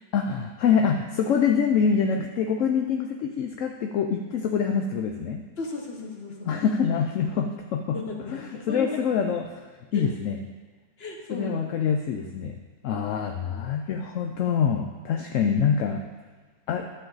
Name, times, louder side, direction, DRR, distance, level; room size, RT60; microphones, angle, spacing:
voice 1, 0.1-5.4 6.5-8.0 8.3-9.7 9.9-10.4 11.3-12.6 12.8-16.0 16.7-16.9, left 6 dB, 65° left, 3 dB, 0.8 m, -25 dB
voice 2, 5.6-6.5 7.9-8.9 9.9-10.1 11.0-11.6, left 3 dB, 40° left, 1 dB, 1.4 m, -35 dB
12.5 x 6.7 x 4.0 m, 1.4 s
omnidirectional pair, 1.7 m